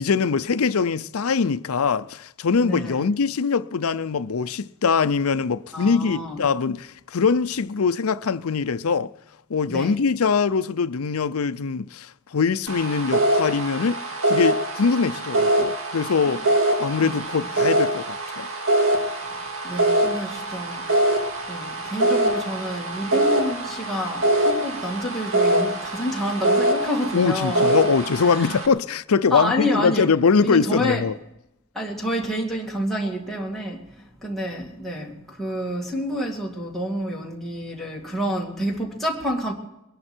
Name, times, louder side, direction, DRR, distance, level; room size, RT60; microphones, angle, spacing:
voice 1, 0.0-9.1 9.5-14.0 14.3-16.4 16.8-18.5 27.1-31.1, left 5 dB, 80° left, 0.6 m, -22 dB
voice 2, 2.6-3.1 5.7-6.4 9.7-9.9 16.3-16.4 17.0-17.4 19.2-27.8 28.2-28.6 29.3-31.1 31.7-39.5, equal, ahead, 2.3 m, -29 dB
sound 1, 12.7-28.7, right 1 dB, 70° right, 2.2 m, -23 dB
22.5 x 11.0 x 4.4 m
head